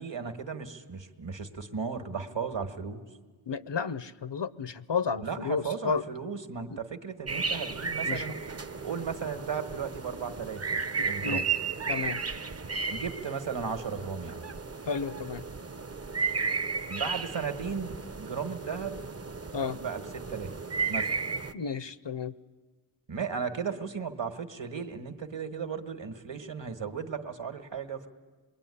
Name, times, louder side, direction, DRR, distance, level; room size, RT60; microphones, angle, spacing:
voice 1, 0.0-3.0 5.2-8.4 8.8-11.5 12.9-14.5 16.9-19.0 19.5-20.0 20.3-20.6 20.9-21.1 23.1-28.1, right 6 dB, 65° right, 7 dB, 1.8 m, -35 dB
voice 2, 3.5-6.0 6.7-6.8 8.1-8.3 11.0-11.4 11.9-12.2 14.9-15.4 19.5-19.8 21.5-22.3, left 5 dB, 60° left, 15 dB, 0.9 m, -32 dB
sound 1, 7.3-21.5, right 5 dB, 30° right, 0.8 m, -34 dB
26.5 x 22.0 x 10.0 m, 1.3 s
wide cardioid pair, 60°, 48 cm